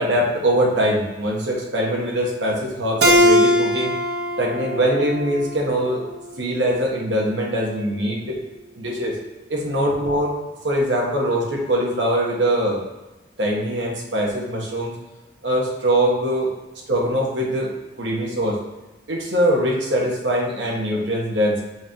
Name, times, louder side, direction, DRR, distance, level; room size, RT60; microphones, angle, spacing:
voice 1, 0.0-3.9 4.4-6.0 6.4-8.4 8.8-9.1 9.5-10.4 10.6-12.8 13.4-14.9 15.4-16.5 16.9-17.7 18.0-18.6 19.1-21.6, equal, 80° right, -2 dB, 1.5 m, -22 dB
Keyboard (musical), 3.0-6.2, equal, 60° right, 0.7 m, -20 dB
6.4 x 3.0 x 5.3 m, 1.1 s
head